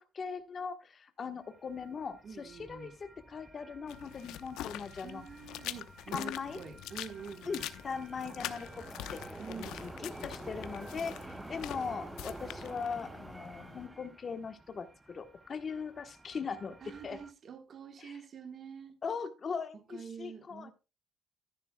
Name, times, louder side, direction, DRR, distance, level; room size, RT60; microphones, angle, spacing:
voice 1, 0.0-5.2 6.1-6.6 7.4-8.8 9.1-16.8 17.0-17.2 18.0-18.2 19.0-20.7, left 5 dB, 25° left, 1.1 m, -40 dB
sound 1, 1.4-17.3, right 2 dB, 5° right, 0.6 m, -49 dB
voice 2, 2.2-2.9 5.0-7.7 9.4-9.9 16.8-19.0 19.9-20.7, right 6 dB, 35° right, 1.3 m, -46 dB
sound 2, 3.9-13.9, left 13 dB, 80° left, 0.9 m, -45 dB
13.5 x 11.0 x 2.2 m
cardioid pair, 180°, 0 cm